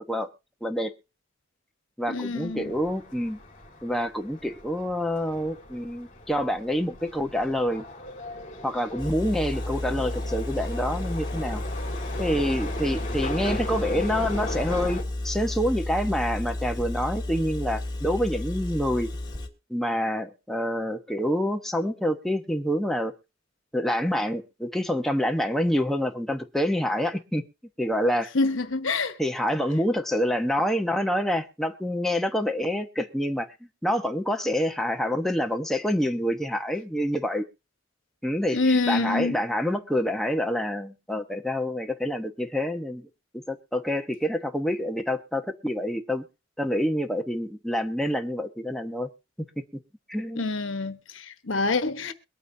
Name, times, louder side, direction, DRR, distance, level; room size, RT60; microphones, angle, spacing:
voice 1, 0.6-0.9 2.0-3.4 3.8-7.8 8.6-11.6 12.2-19.1 19.7-23.1 23.7-27.4 27.8-28.3 29.2-33.5 33.8-37.4 38.2-43.0 43.3-46.2 46.6-49.1 50.1-50.5, equal, ahead, 1.0 m, -27 dB
voice 2, 2.1-2.7 28.3-29.1 38.5-39.4 50.4-52.1, left 3 dB, 85° left, 1.1 m, -26 dB
sound 1, 2.4-15.0, left 1 dB, 40° left, 2.6 m, -38 dB
Engine, 9.0-19.5, left 1 dB, 20° left, 1.7 m, -32 dB
23.0 x 9.0 x 2.7 m
head